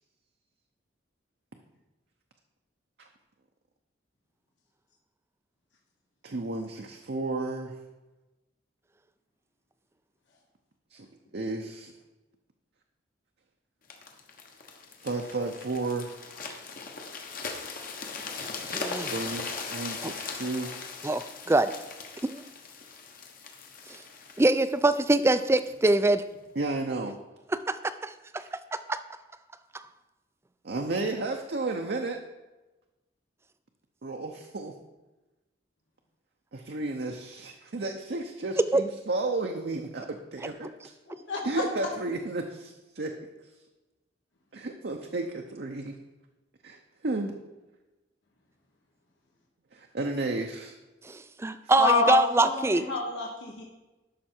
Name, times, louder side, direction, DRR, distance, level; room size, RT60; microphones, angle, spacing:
voice 1, 6.2-7.8 10.9-11.1 11.3-11.9 15.0-16.1 19.1-20.8 26.5-27.2 28.4-28.5 30.6-32.2 34.0-34.7 36.5-40.7 41.4-43.2 44.5-46.0 46.6-47.3 49.7-50.7, right 2 dB, 60° right, 2 dB, 0.7 m, -33 dB
sound 1, 13.9-25.7 26.3-26.5, left 4 dB, 50° left, 1.2 m, -39 dB
voice 2, 18.7-19.1 21.0-21.7 22.2-22.4 24.4-26.2 27.5-27.8 28.0-28.4 28.7-29.0 38.7-38.8 51.4-52.9, right 2 dB, 15° right, 12 dB, 0.4 m, -24 dB
voice 3, 51.8-53.6, left 4 dB, 80° left, -1 dB, 1.4 m, -27 dB
12.5 x 5.9 x 4.4 m, 1.1 s
head